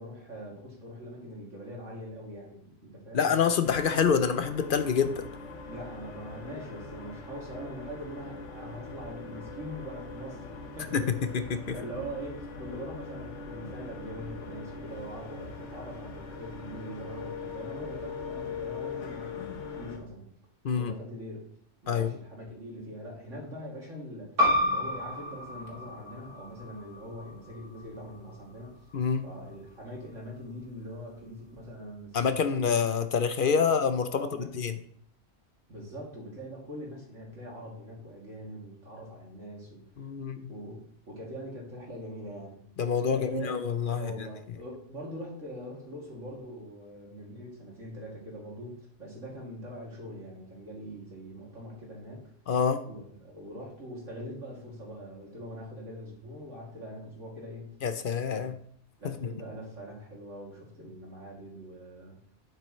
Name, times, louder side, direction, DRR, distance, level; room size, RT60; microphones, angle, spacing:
voice 1, 0.0-3.3 5.7-11.0 11.7-19.4 19.8-20.3 20.7-21.5 21.8-28.7 29.2-32.8 33.6-33.7 34.1-34.6 35.7-39.8 40.5-42.6 43.1-43.5 43.9-52.2 52.8-57.8 58.4-58.5 59.0-62.2, equal, 90° right, -3 dB, 3.0 m, -42 dB
voice 2, 3.1-5.2 10.9-11.0 11.3-11.6 20.6-20.9 21.9-22.1 28.9-29.2 32.1-34.7 40.0-40.5 42.8-44.1 52.5-52.8 57.8-58.5, left 6 dB, 55° left, 10 dB, 0.7 m, -26 dB
sound 1, 3.6-20.0, left 4 dB, 75° left, 1.5 m, -41 dB
sound 2, 24.4-29.5, left 1 dB, 45° right, 4.1 m, -32 dB
9.2 x 7.7 x 3.1 m, 0.64 s
omnidirectional pair, 1.2 m